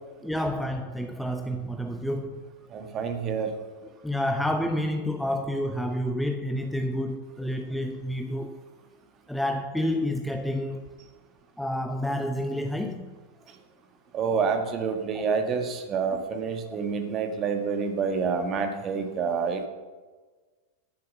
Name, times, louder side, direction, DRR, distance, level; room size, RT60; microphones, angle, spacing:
voice 1, 0.2-2.5 3.8-8.5 9.3-10.9 11.6-13.1 15.1-15.2 16.2-16.3, left 1 dB, ahead, 5 dB, 0.8 m, -29 dB
voice 2, 2.7-3.5 14.1-19.7, right 5 dB, 30° right, 5 dB, 1.7 m, -28 dB
12.0 x 7.5 x 6.9 m, 1.4 s
figure-of-eight pair, 90°, 0 cm